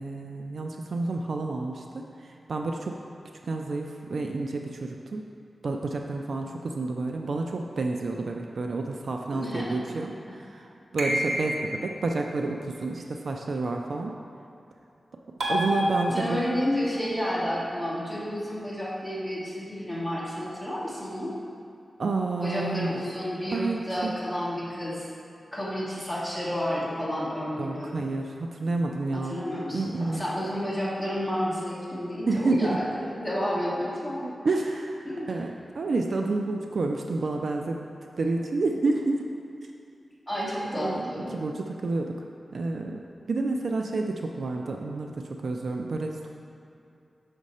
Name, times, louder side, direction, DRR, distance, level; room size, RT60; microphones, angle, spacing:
voice 1, 0.0-2.1 2.5-3.0 3.4-5.2 5.6-10.7 10.9-14.1 15.5-16.4 22.0-22.9 23.5-24.1 27.6-29.4 29.7-30.3 32.3-32.8 34.2-34.7 35.3-35.5 35.8-37.8 38.2-39.2 40.8-41.0 41.3-42.2 42.5-43.0 43.3-46.4, right 3 dB, 65° right, 2 dB, 0.4 m, -29 dB
voice 2, 9.3-9.8 10.2-10.4 16.1-21.3 22.4-25.1 25.5-27.9 29.1-34.5 35.0-35.3 40.3-41.3, equal, ahead, -8 dB, 1.5 m, -31 dB
sound 1, 11.0-11.9 15.4-16.6, equal, 90° right, 0.9 m, -28 dB
6.2 x 5.1 x 4.1 m, 2.6 s
wide cardioid pair, 130°, 0 cm